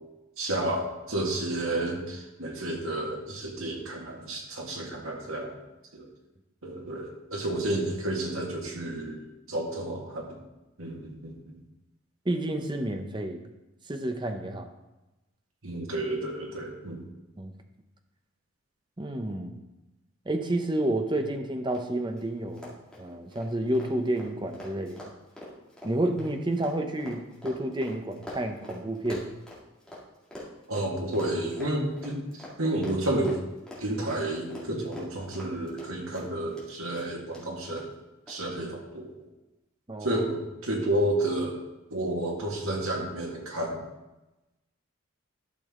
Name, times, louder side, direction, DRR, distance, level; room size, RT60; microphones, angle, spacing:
voice 1, 0.4-5.5 5.9-6.1 6.6-9.2 9.5-10.4 10.8-11.3 15.6-17.0 30.7-32.2 32.6-33.4 33.8-37.8 38.3-39.1 40.0-41.5 41.9-43.8, right 1 dB, 90° right, 0 dB, 1.8 m, -31 dB
voice 2, 12.3-13.4 13.9-14.7 17.4-17.5 19.0-19.6 20.3-22.7 23.0-25.1 25.8-29.3 39.9-40.2, right 1 dB, 20° right, 5 dB, 0.7 m, -30 dB
Run, 21.7-21.8 22.1-22.2 22.5-30.0 30.3-36.7 36.9-37.4 37.8-37.9 38.3-38.4, left 1 dB, 5° left, 2.0 m, -44 dB
12.0 x 6.2 x 3.7 m, 1.0 s
head